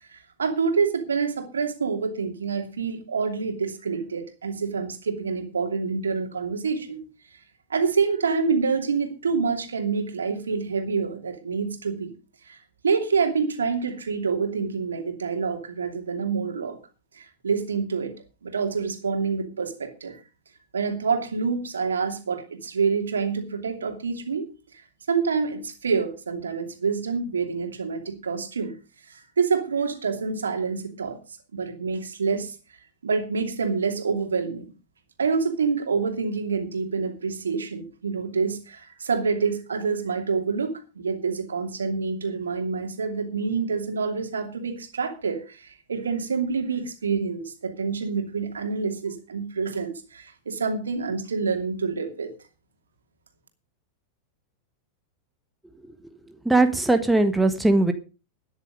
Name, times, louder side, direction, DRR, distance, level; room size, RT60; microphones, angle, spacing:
voice 1, 0.1-7.0 7.7-12.1 12.4-12.6 12.8-16.8 17.1-18.1 18.4-20.2 20.7-24.8 25.1-28.7 29.1-31.2 31.5-32.6 33.0-34.7 35.2-52.3, right 5 dB, 70° right, 5 dB, 2.7 m, -27 dB
voice 2, 56.4-57.9, right 2 dB, 5° right, 7 dB, 1.5 m, -20 dB
13.0 x 10.0 x 5.2 m, 0.32 s
figure-of-eight pair, 90°, 0 cm